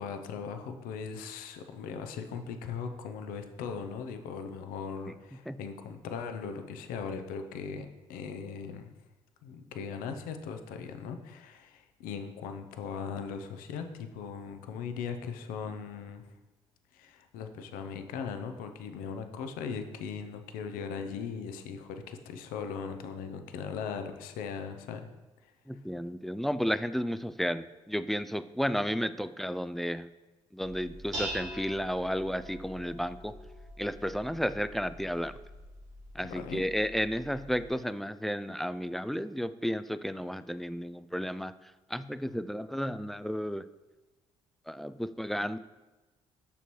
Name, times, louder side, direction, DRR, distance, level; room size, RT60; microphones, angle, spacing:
voice 1, 0.0-8.9 9.4-16.2 16.9-25.1 25.4-25.5 36.2-36.6, left 6 dB, 65° left, 7 dB, 0.7 m, -39 dB
voice 2, 25.7-30.1 30.5-33.3 33.8-35.4 36.2-41.5 41.9-43.6 44.7-45.6, equal, ahead, 13 dB, 0.3 m, -32 dB
Dishes pots and pans, 30.6-37.7, equal, 85° right, 1.3 m, -44 dB
6.9 x 6.6 x 3.1 m, 1.2 s
figure-of-eight pair, 45°, 16 cm